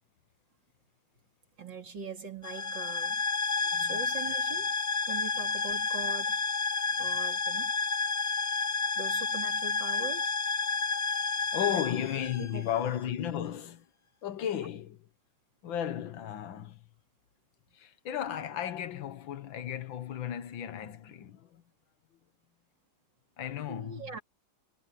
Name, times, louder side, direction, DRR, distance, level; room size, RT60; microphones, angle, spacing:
voice 1, 1.6-3.2 3.8-4.7 5.1-6.4 7.0-7.7 9.0-10.4 11.8-11.9 12.4-12.9 23.5-24.2, right 5 dB, 60° right, 3.6 m, -42 dB
sound 1, 2.4-13.0, left 4 dB, 30° left, 0.9 m, -30 dB
voice 2, 3.6-4.0 11.5-13.9 14.2-15.1 15.6-16.8 17.7-21.6 23.4-24.2, left 10 dB, 75° left, 1.8 m, -35 dB
omnidirectional pair, 2.2 m